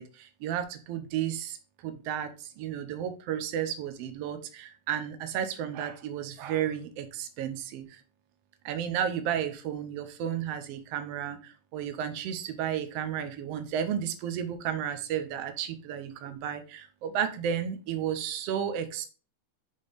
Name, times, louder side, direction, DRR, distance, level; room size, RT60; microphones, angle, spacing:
voice 1, 0.0-1.6 1.8-8.0 8.6-19.1, right 9 dB, 90° right, 8 dB, 1.3 m, -33 dB
6.6 x 3.7 x 5.0 m, 0.36 s
omnidirectional pair, 3.8 m